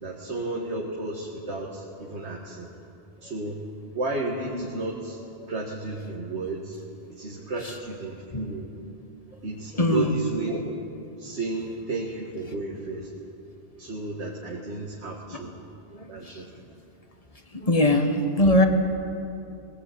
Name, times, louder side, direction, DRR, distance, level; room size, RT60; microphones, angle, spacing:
voice 1, 0.0-2.7 3.2-3.6 3.9-5.2 5.5-6.8 7.1-8.7 9.4-10.8 11.2-13.1 13.8-15.5 16.1-16.5, right 2 dB, 75° right, -2 dB, 2.1 m, -33 dB
voice 2, 9.7-10.2 15.9-16.6 17.5-18.7, left 1 dB, 35° left, 5 dB, 1.5 m, -22 dB
20.0 x 17.0 x 8.5 m, 2.7 s
omnidirectional pair, 1.1 m